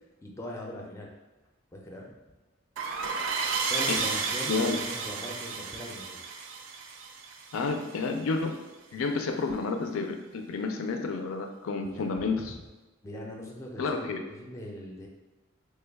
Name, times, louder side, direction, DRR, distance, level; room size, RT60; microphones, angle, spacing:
voice 1, 0.2-1.1 1.7-2.1 3.7-6.2 12.0-12.4 13.0-15.1, equal, 15° left, -1 dB, 0.4 m, -41 dB
sound 1, 2.8-8.1, right 5 dB, 65° right, 0.3 m, -32 dB
voice 2, 7.5-8.5 8.9-12.6 13.8-14.2, left 4 dB, 90° left, 5 dB, 0.4 m, -30 dB
3.3 x 2.2 x 3.4 m, 1.1 s
head